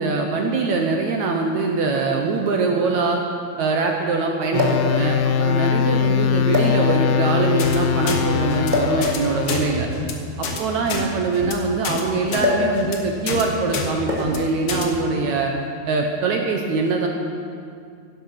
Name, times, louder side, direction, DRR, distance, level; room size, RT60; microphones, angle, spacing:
voice 1, 0.0-3.2 3.6-9.9 10.4-15.5 15.9-17.1, right 4 dB, 75° right, 2 dB, 1.7 m, -23 dB
sound 1, 0.8-0.9 2.0-2.1 2.4-2.5 4.5-4.9 5.8-6.0 6.5-7.2 8.7-9.0 10.2-11.8 12.4-12.8 13.0-13.3 14.1-14.5 15.4-15.7, left 3 dB, 20° right, 1.2 m, -24 dB
sound 2, 4.5-9.8, left 7 dB, 80° left, 2.7 m, -21 dB
sound 3, 7.6-7.8 8.1-8.2 8.5-8.7 9.0-9.2 9.4-9.6 9.9-10.1 10.4-10.6 10.9-11.0 11.3-11.5 11.8-12.0 12.3-12.4 12.8-13.0 13.3-13.4 13.7-13.9 14.2-14.4 14.7-14.8, left 4 dB, 65° left, 1.4 m, -27 dB
17.0 x 11.5 x 5.8 m, 2.3 s
omnidirectional pair, 4.7 m